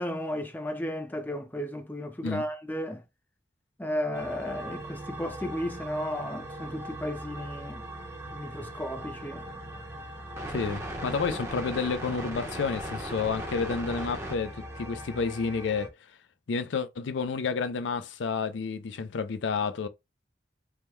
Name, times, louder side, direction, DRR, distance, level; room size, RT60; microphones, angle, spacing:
voice 1, 0.0-3.0 3.8-7.8 8.3-9.5, left 1 dB, 10° left, 0.4 m, -34 dB
sound 1, 4.1-15.9, right 1 dB, 15° right, 0.8 m, -39 dB
voice 2, 10.5-15.9 16.5-19.9, left 5 dB, 70° left, 0.4 m, -30 dB
3.5 x 2.2 x 4.4 m
head